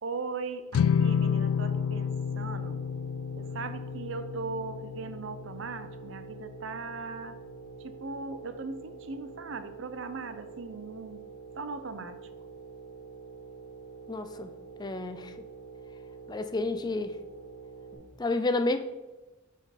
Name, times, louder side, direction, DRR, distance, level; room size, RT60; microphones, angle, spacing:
voice 1, 0.0-2.8 3.4-7.4 7.8-11.3 11.6-12.2, right 4 dB, 65° right, 10 dB, 0.6 m, -39 dB
sound 1, 0.7-7.2, left 7 dB, 90° left, 0.3 m, -31 dB
sound 2, 0.7-17.9, right 5 dB, 15° right, 2.3 m, -47 dB
voice 2, 14.1-14.5 14.8-15.3 16.3-17.1 18.2-18.8, left 2 dB, 20° left, 9 dB, 0.4 m, -30 dB
8.9 x 5.0 x 4.1 m, 1.1 s
head